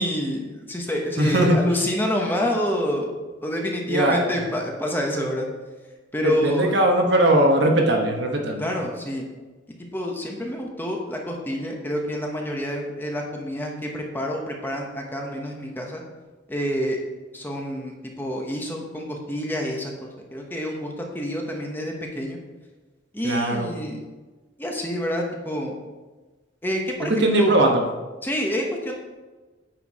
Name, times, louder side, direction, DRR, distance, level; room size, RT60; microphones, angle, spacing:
voice 1, 0.0-3.1 3.4-5.5 6.1-6.7 8.6-9.2 9.9-16.0 16.5-17.0 17.3-19.9 20.3-22.4 23.1-24.0 24.6-25.8 26.6-27.5 28.2-28.9, equal, 10° left, 0 dB, 1.0 m, -27 dB
voice 2, 1.2-1.6 3.9-4.2 6.2-8.6 23.2-23.7 27.2-27.8, right 1 dB, 60° right, 2 dB, 1.2 m, -19 dB
8.9 x 4.7 x 4.8 m, 1.3 s
head